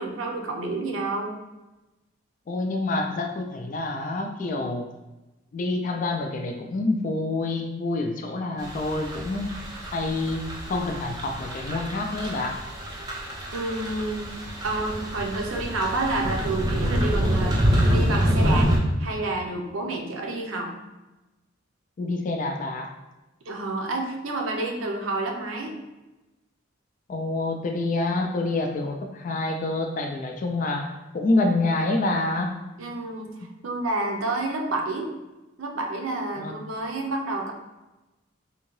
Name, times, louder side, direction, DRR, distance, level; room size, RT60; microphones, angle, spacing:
voice 1, 0.0-1.3 13.5-14.4 14.6-18.7 19.0-20.7 23.4-25.7 32.8-33.3 33.6-35.1 35.6-37.5, right 2 dB, 75° right, 1 dB, 0.6 m, -29 dB
voice 2, 2.5-4.9 5.5-12.6 22.0-22.9 27.1-32.6 33.4-33.5 36.3-36.5, left 2 dB, 40° left, 3 dB, 0.3 m, -27 dB
sound 1, 8.6-18.8, equal, 20° right, 0.6 m, -26 dB
3.6 x 2.6 x 3.1 m, 1.1 s
head